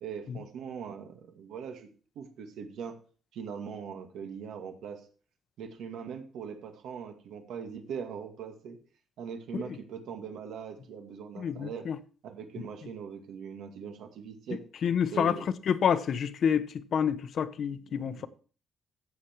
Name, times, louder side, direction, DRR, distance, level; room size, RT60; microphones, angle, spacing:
voice 1, 0.0-1.9 2.2-3.0 3.3-5.0 5.6-8.8 9.2-11.9 12.2-14.6 15.1-15.4 17.9-18.3, right 7 dB, 80° right, 2.2 m, -41 dB
voice 2, 11.4-12.0 14.8-15.4 15.7-18.3, left 7 dB, 50° left, 0.9 m, -28 dB
15.5 x 7.3 x 4.6 m
cardioid pair, 160°, 0 cm